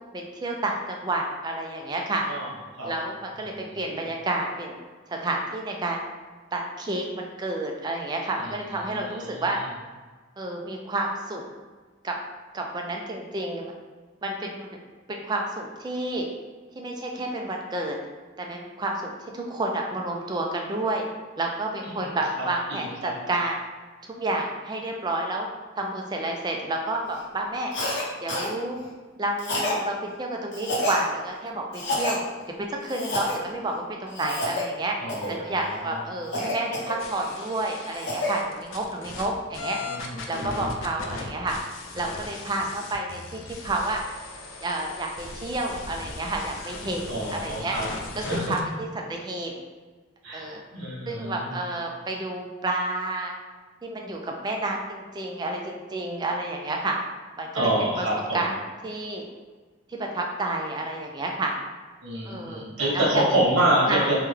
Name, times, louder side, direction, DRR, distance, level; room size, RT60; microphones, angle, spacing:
voice 1, 0.1-2.2 2.8-4.8 5.1-6.0 6.5-9.6 10.4-11.4 12.0-12.2 12.5-13.7 14.2-14.7 15.1-16.3 16.8-18.0 18.4-21.1 21.4-23.6 24.0-25.5 25.8-27.7 28.2-28.8 29.2-32.2 32.6-35.0 35.3-39.8 40.3-41.6 41.9-44.0 44.6-47.8 48.1-49.5 50.3-50.6 51.1-53.3 53.8-57.0 57.4-57.7 58.0-58.1 58.3-58.5 58.8-59.3 59.9-61.5 62.2-62.6 62.9-63.2 63.9-64.1, right 2 dB, 20° right, 1 dB, 0.3 m, -30 dB
voice 2, 3.5-3.8 8.4-8.6 8.9-9.4 22.0-22.1 22.7-23.1 35.0-36.0 39.8-40.8 47.1-47.9 48.2-48.6 50.2-51.5 57.5-58.4 62.0-64.1, right 1 dB, 90° right, -4 dB, 1.0 m, -27 dB
Cough, 27.7-28.0 28.3-28.5 29.4-29.8 30.5-31.0 31.7-32.2 32.9-33.4 34.1-34.6 35.1-35.4 36.3-37.3 37.7-38.3, left 1 dB, 60° left, 0.8 m, -29 dB
sound 1, 37.0-39.3 39.5-48.6, left 3 dB, 90° left, 0.4 m, -39 dB
3.3 x 2.2 x 3.3 m, 1.4 s
head